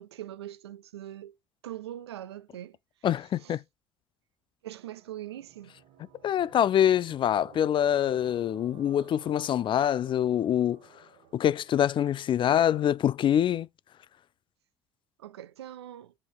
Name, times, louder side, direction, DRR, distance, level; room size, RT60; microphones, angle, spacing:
voice 1, 0.0-1.4 1.6-2.8 3.4-3.6 4.6-5.7 15.2-16.1, right 12 dB, 90° right, 0.4 m, -42 dB
voice 2, 3.0-3.6 6.2-10.8 11.3-13.7, left 10 dB, 40° left, 0.4 m, -25 dB
sound 1, 4.7-13.0, right 8 dB, 75° right, 1.2 m, -55 dB
7.3 x 3.0 x 4.7 m
hypercardioid pair, 65°, 13 cm